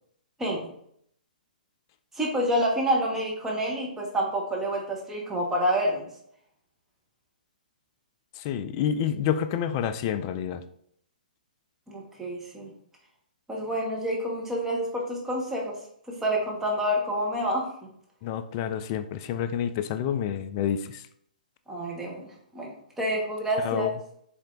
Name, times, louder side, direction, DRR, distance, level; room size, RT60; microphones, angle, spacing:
voice 1, 2.2-6.1 11.9-12.7 13.5-15.7 16.2-17.7 21.7-22.3 22.5-23.9, equal, 5° right, -2 dB, 1.0 m, -28 dB
voice 2, 8.4-10.6 18.2-21.0 23.6-23.9, left 9 dB, 30° left, 10 dB, 0.4 m, -28 dB
4.3 x 3.2 x 3.7 m, 0.68 s
figure-of-eight pair, 125°, 5 cm